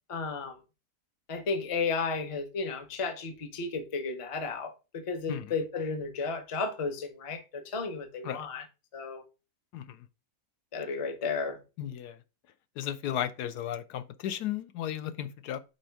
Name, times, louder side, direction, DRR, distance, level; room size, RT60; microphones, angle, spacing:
voice 1, 0.1-0.6 1.3-8.6 8.9-9.2 10.7-11.6, left 4 dB, 30° left, 0.6 m, -33 dB
voice 2, 11.8-12.2 12.8-15.6, left 10 dB, 80° left, 1.2 m, -35 dB
5.3 x 4.3 x 4.4 m
omnidirectional pair, 1.8 m